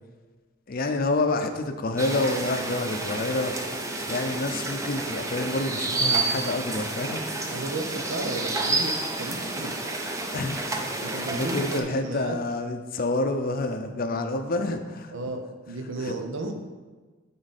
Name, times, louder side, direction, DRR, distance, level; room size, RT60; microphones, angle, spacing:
voice 1, 0.7-3.6 4.1-7.3 10.3-10.9 11.3-15.1 16.1-16.2, left 2 dB, 45° left, 7 dB, 0.5 m, -28 dB
sound 1, 2.0-11.8, right 3 dB, 15° right, 0.6 m, -30 dB
voice 2, 7.5-9.9 11.0-12.4 15.1-16.5, right 2 dB, 75° right, 5 dB, 0.8 m, -33 dB
9.7 x 3.9 x 4.2 m, 1.3 s
head